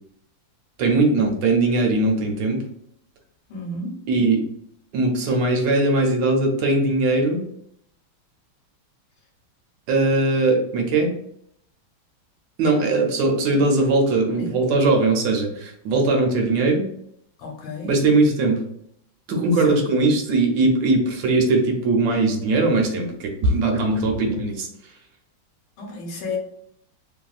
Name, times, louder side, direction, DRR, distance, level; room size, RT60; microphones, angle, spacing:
voice 1, 0.8-2.6 4.1-4.4 4.9-7.4 9.9-11.1 12.6-16.9 17.8-18.6 19.3-24.7, right 2 dB, 70° right, 2 dB, 1.3 m, -20 dB
voice 2, 3.5-4.0 14.4-14.5 17.4-17.9 19.5-19.8 25.8-26.4, left 2 dB, 80° left, 0 dB, 1.6 m, -32 dB
3.3 x 2.6 x 2.3 m, 0.70 s
omnidirectional pair, 2.2 m